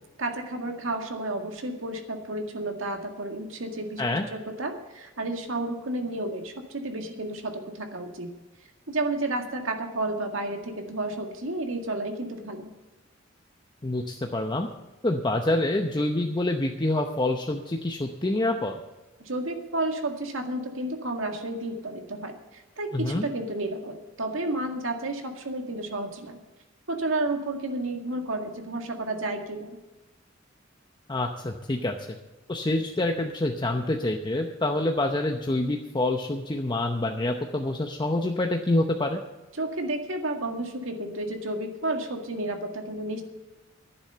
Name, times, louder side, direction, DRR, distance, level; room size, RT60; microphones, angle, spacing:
voice 1, 0.2-8.3 8.9-12.7 19.2-26.4 26.9-29.8 39.6-43.2, right 2 dB, 85° right, 4 dB, 2.0 m, -31 dB
voice 2, 13.8-14.7 15.0-18.8 22.9-23.3 31.1-31.9 32.5-39.2, left 2 dB, 25° left, 3 dB, 0.8 m, -26 dB
11.5 x 10.0 x 6.7 m, 1.1 s
head